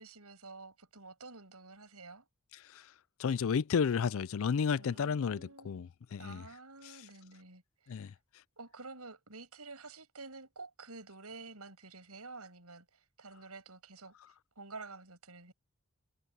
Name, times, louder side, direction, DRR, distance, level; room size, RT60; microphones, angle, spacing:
voice 1, 0.0-2.3 4.8-5.8 6.2-8.0 8.6-14.1 14.6-15.5, right 3 dB, 85° right, 7.3 m, -50 dB
voice 2, 3.2-6.4 7.9-8.1, left 6 dB, 65° left, 0.4 m, -32 dB
head